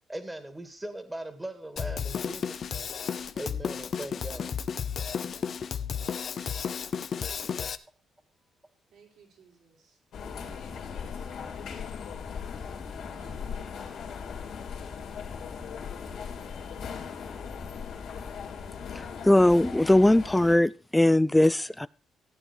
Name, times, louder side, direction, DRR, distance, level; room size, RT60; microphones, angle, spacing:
voice 1, 0.1-2.9 3.3-4.5, right 1 dB, 15° right, 8 dB, 2.2 m, -39 dB
Drum kit, 1.8-7.8, left 7 dB, 55° left, 0.8 m, -33 dB
voice 2, 4.9-7.7 8.4-8.5 8.9-10.0 10.2-11.3 13.1-14.0, right 6 dB, 75° right, -1 dB, 5.2 m, -58 dB
sound 1, 10.1-20.6, left 6 dB, 75° left, 3.3 m, -38 dB
voice 3, 19.2-21.9, left 1 dB, 10° left, 19 dB, 0.5 m, -20 dB
14.5 x 8.9 x 4.5 m, 0.36 s
cardioid pair, 90°, 0 cm